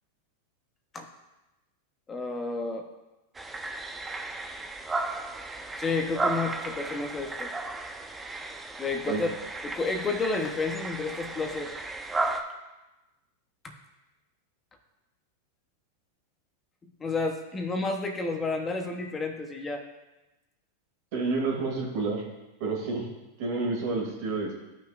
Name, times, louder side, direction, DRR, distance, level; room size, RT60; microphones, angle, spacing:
voice 1, 2.1-2.9 5.8-7.5 8.8-9.3 9.6-11.7 17.0-19.8, left 3 dB, 20° left, 3 dB, 1.0 m, -30 dB
sound 1, 3.3-12.4, right 3 dB, 15° right, 0.8 m, -34 dB
voice 2, 21.1-22.3 22.6-23.1 23.4-24.5, right 3 dB, 60° right, 0 dB, 2.5 m, -29 dB
13.0 x 5.9 x 2.6 m, 1.0 s
hypercardioid pair, 115°, 0 cm